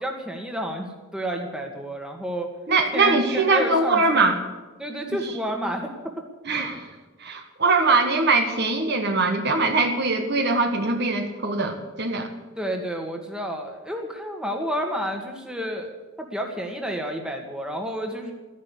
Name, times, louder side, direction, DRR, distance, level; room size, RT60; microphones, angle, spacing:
voice 1, 0.0-2.5 2.9-4.3 4.8-6.1 6.5-6.7 12.5-15.9 16.2-18.3, equal, 5° right, 2 dB, 1.7 m, -30 dB
voice 2, 2.7-4.4 6.5-6.9 7.2-12.3, right 3 dB, 50° right, 4 dB, 1.3 m, -22 dB
14.0 x 11.0 x 8.4 m, 1.2 s
head